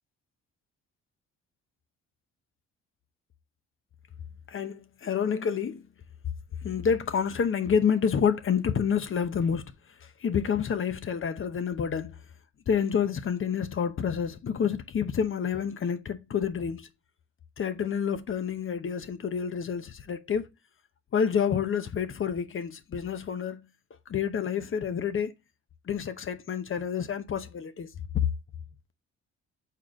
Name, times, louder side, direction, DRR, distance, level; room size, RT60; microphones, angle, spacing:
voice 1, 4.5-5.8 6.6-9.7 10.0-12.2 12.7-16.9 17.6-20.5 21.1-23.7 24.1-25.3 25.9-28.3, left 7 dB, 45° left, 0.8 m, -28 dB
6.3 x 4.5 x 3.6 m
cardioid pair, 90°, 30 cm